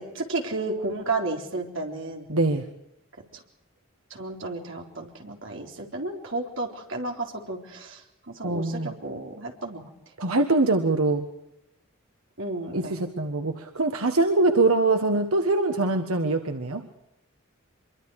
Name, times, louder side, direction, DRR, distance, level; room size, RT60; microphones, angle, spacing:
voice 1, 0.0-2.3 3.3-3.4 4.1-9.8 12.4-13.0, right 2 dB, 60° right, 2 dB, 4.0 m, -32 dB
voice 2, 2.3-2.6 8.4-8.9 10.2-11.3 12.7-16.8, right 2 dB, 90° right, 5 dB, 1.6 m, -23 dB
25.0 x 23.5 x 4.9 m, 0.84 s
head